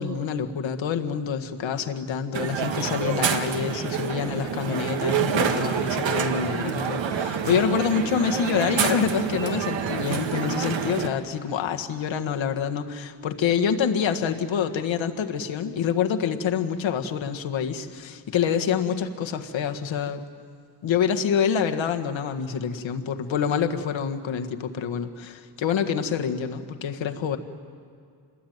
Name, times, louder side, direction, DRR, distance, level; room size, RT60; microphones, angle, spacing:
voice 1, 0.0-20.2 20.8-27.4, left 7 dB, 75° left, 6 dB, 1.6 m, -26 dB
Crowd, 2.3-11.1, right 7 dB, 75° right, 1.7 m, -27 dB
27.0 x 21.0 x 9.4 m, 2.3 s
wide cardioid pair, 160°, 46 cm